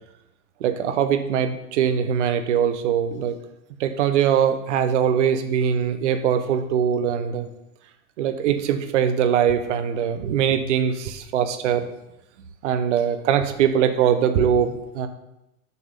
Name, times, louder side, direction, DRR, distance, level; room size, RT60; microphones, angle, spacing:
voice 1, 0.6-3.4 3.8-7.5 8.2-11.9 12.6-15.1, right 8 dB, 50° right, 9 dB, 0.8 m, -22 dB
6.7 x 5.3 x 5.4 m, 0.87 s
supercardioid pair, 160°, 46 cm